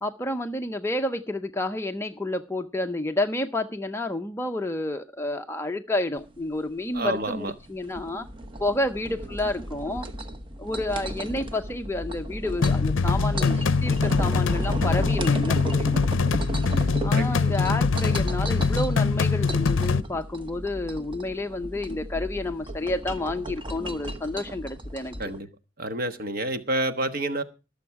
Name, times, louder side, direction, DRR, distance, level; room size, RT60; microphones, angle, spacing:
voice 1, 0.0-8.3 8.6-10.1 10.6-15.9 17.0-25.1, left 1 dB, 10° left, 5 dB, 0.6 m, -30 dB
sound 1, 6.2-25.4, right 1 dB, 25° right, 1.0 m, -36 dB
voice 2, 6.9-7.5 17.1-17.8 25.2-25.5 25.8-27.4, right 2 dB, 45° right, 9 dB, 1.3 m, -29 dB
sound 2, 12.6-20.0, left 4 dB, 70° left, 0.6 m, -23 dB
21.0 x 7.1 x 4.6 m, 0.31 s
head